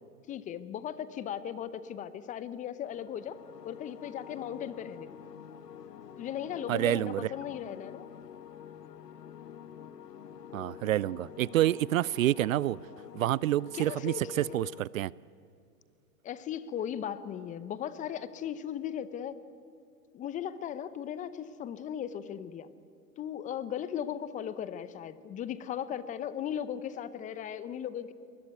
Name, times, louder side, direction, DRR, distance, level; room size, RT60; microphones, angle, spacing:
voice 1, 0.3-3.4 3.6-5.1 6.2-8.1 13.7-14.6 16.2-19.4 20.1-22.7 23.2-28.1, left 9 dB, 15° left, 0.7 m, -37 dB
sound 1, 2.9-14.8, left 8 dB, 80° left, 1.4 m, -48 dB
voice 2, 6.7-7.3 10.5-12.8 13.1-15.1, right 14 dB, 60° right, 0.5 m, -28 dB
24.0 x 21.0 x 9.3 m
hypercardioid pair, 120°, 47 cm